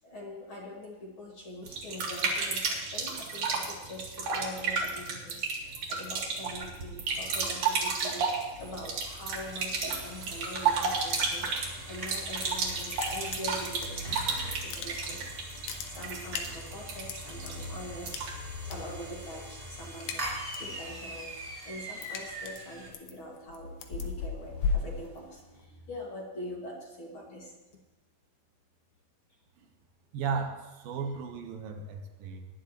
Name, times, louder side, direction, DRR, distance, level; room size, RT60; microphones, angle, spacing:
voice 1, 0.0-15.3 15.6-20.3 20.6-27.5, left 1 dB, 40° left, -3 dB, 2.6 m, -43 dB
sound 1, 1.6-18.5, right 4 dB, 65° right, 3.5 m, -33 dB
sound 2, 8.5-22.9, equal, 15° right, 2.7 m, -42 dB
sound 3, 12.4-12.6 12.9-14.2 14.5-15.2 15.5-17.5 18.1-18.8 19.1-19.4 19.7-20.7 21.1-25.7, left 5 dB, 75° left, 2.7 m, -36 dB
voice 2, 30.1-32.5, right 5 dB, 80° right, 4 dB, 3.0 m, -35 dB
19.5 x 11.0 x 3.1 m, 1.2 s
omnidirectional pair, 4.1 m